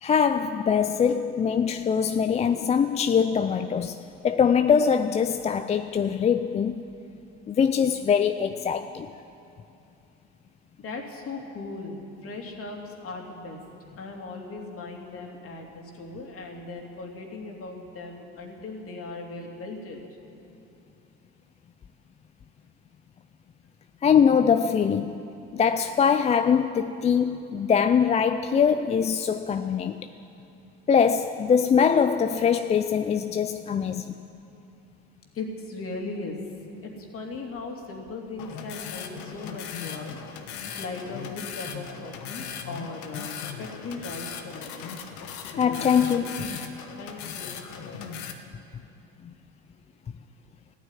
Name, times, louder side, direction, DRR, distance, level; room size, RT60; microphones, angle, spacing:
voice 1, 0.0-6.9 7.5-9.1 24.0-25.2 25.5-30.1 30.9-34.1 45.6-46.5, left 7 dB, 20° left, 0.4 m, -23 dB
voice 2, 10.8-13.6 14.0-20.0 35.3-36.4 36.8-45.1 45.9-46.5 47.0-48.1, left 3 dB, 40° left, 2.8 m, -38 dB
sound 1, 38.4-48.3, left 7 dB, 60° left, 1.3 m, -38 dB
14.5 x 9.4 x 9.9 m
hypercardioid pair, 85°, 33 cm